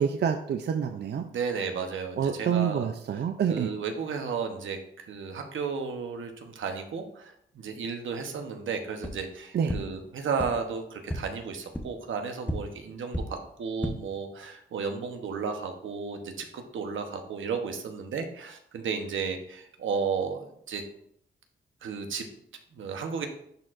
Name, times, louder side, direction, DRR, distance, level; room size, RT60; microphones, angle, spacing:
voice 1, 0.0-1.2 2.2-3.7 9.5-9.7, right 7 dB, 60° right, 6 dB, 0.4 m, -27 dB
voice 2, 1.3-2.9 3.1-3.2 3.5-20.8 21.8-22.3 22.7-23.3, right 5 dB, 80° right, 5 dB, 0.9 m, -33 dB
sound 1, 9.0-9.1 9.7-9.8 10.4-10.5 11.0-11.2 11.7-11.8 12.4-12.5 13.1-13.2 13.7-13.9, equal, 10° left, 0.8 m, -31 dB
10.5 x 4.5 x 2.5 m, 0.71 s
cardioid pair, 90°, 20 cm